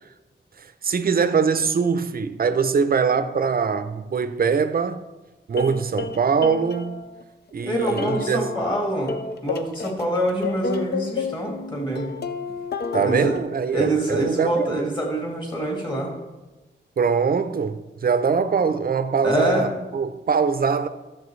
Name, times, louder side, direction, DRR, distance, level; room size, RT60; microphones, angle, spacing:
voice 1, 0.6-5.0 5.5-7.1 7.5-8.5 12.9-14.9 17.0-20.9, right 6 dB, 50° right, 0.6 m, -22 dB
Ukelele Tuning, 5.5-7.2 7.8-8.8 9.1-13.4, left 5 dB, 55° left, 0.6 m, -30 dB
voice 2, 7.6-12.1 13.0-13.4 13.7-16.1 19.2-19.7, right 1 dB, 25° left, 2.1 m, -25 dB
13.5 x 7.0 x 3.2 m
wide cardioid pair, 145°, 20 cm